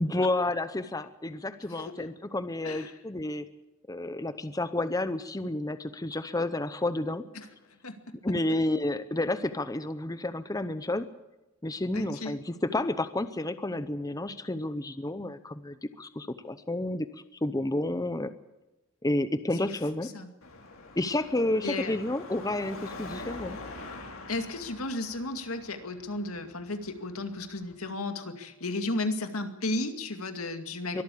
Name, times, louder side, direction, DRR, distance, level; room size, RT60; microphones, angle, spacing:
voice 1, 0.0-3.5 3.9-7.2 8.2-11.1 11.6-17.1 17.4-18.3 19.0-20.1 21.0-23.6 30.9-31.0, left 1 dB, 15° left, 12 dB, 0.7 m, -30 dB
voice 2, 11.9-12.4 20.1-20.3 21.6-22.0 24.3-31.0, left 2 dB, 85° left, 7 dB, 2.3 m, -34 dB
Car passing by / Traffic noise roadway noise / Engine, 20.4-27.7, left 2 dB, 70° left, 3.7 m, -45 dB
23.5 x 13.5 x 8.5 m, 1.0 s
head